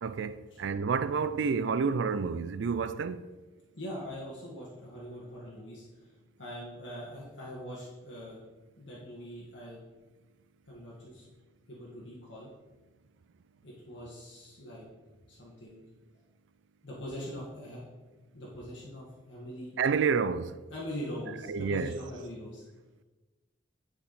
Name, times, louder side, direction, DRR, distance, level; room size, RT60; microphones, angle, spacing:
voice 1, 0.0-3.3 19.8-20.6 21.5-22.0, right 5 dB, 75° right, 0.4 m, -29 dB
voice 2, 3.7-5.8 6.4-8.4 8.8-9.8 10.7-11.2 11.7-12.5 13.6-14.8 15.3-15.8 16.8-17.8 18.3-19.8 20.7-22.6, equal, 75° left, 1.7 m, -42 dB
10.5 x 4.8 x 4.1 m
head